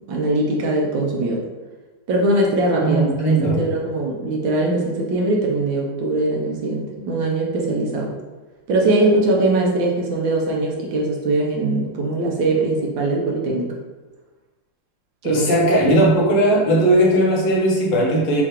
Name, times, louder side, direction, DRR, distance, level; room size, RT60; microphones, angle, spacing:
voice 1, 0.1-1.4 2.1-8.2 8.7-13.7 15.2-15.5 15.8-16.0, right 2 dB, 70° right, -2 dB, 1.4 m, -21 dB
voice 2, 2.8-3.7 15.2-18.4, right 1 dB, 70° left, -2 dB, 1.6 m, -17 dB
6.7 x 2.4 x 2.9 m, 1.2 s
omnidirectional pair, 2.3 m